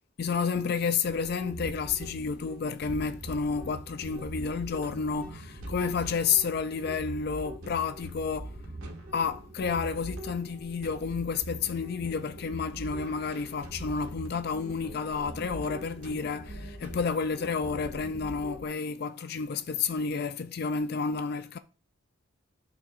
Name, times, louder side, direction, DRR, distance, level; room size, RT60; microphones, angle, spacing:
voice 1, 0.2-8.6 9.1-21.6, left 5 dB, 50° left, 0.4 m, -30 dB
sound 1, 1.0-18.6, right 1 dB, 90° right, 1.9 m, -42 dB
12.0 x 4.3 x 2.5 m
head